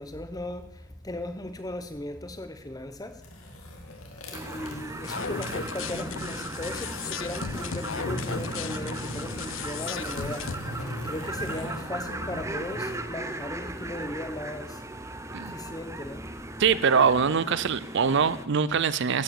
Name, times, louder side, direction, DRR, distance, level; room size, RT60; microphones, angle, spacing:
voice 1, 0.0-3.2 4.3-15.1 15.4-16.3, left 1 dB, 15° left, 1.1 m, -37 dB
sound 1, 3.1-13.0, equal, 85° left, 2.7 m, -39 dB
sound 2, 4.3-18.5, right 2 dB, 15° right, 0.7 m, -38 dB
sound 3, 5.0-10.5, left 6 dB, 60° left, 0.6 m, -36 dB
voice 2, 16.6-19.2, right 6 dB, 55° right, 0.5 m, -23 dB
14.0 x 9.2 x 7.1 m
head